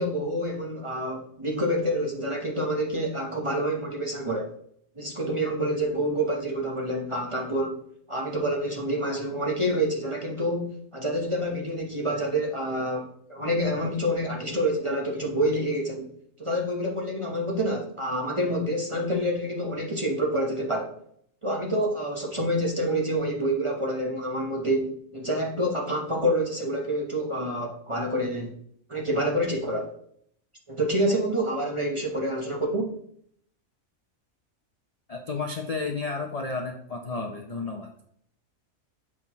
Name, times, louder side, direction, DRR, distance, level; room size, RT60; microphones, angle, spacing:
voice 1, 0.0-4.5 5.0-7.8 8.1-10.7 10.9-16.1 16.4-20.9 21.4-28.5 28.9-29.9 30.7-33.0, equal, 25° right, -1 dB, 0.9 m, -27 dB
voice 2, 35.1-37.9, left 4 dB, 40° left, 2 dB, 0.6 m, -32 dB
7.5 x 6.1 x 3.0 m, 0.67 s
omnidirectional pair, 1.5 m